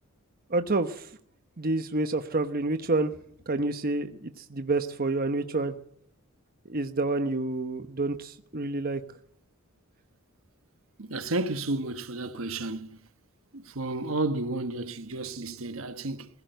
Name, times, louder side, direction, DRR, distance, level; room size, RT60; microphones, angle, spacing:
voice 1, 0.5-1.1 1.6-3.1 3.5-5.7 6.6-9.0, right 2 dB, 45° right, 1.1 m, -28 dB
voice 2, 11.0-13.0 13.5-16.3, right 2 dB, 65° right, 1.4 m, -32 dB
20.5 x 16.5 x 8.0 m
head